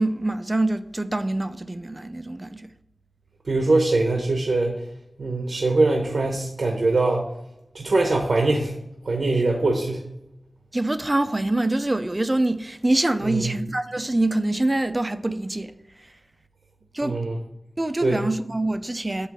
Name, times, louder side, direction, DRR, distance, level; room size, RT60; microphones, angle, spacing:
voice 1, 0.0-2.7 10.7-15.7 16.9-17.2 17.8-19.3, right 2 dB, 25° right, 0.5 m, -25 dB
voice 2, 3.5-4.7 5.2-7.2 7.7-8.7 9.0-10.0 13.2-13.6 17.0-17.4 18.0-18.2, right 2 dB, 80° right, 1.0 m, -22 dB
8.3 x 3.1 x 6.1 m
wide cardioid pair, 85°, 0 cm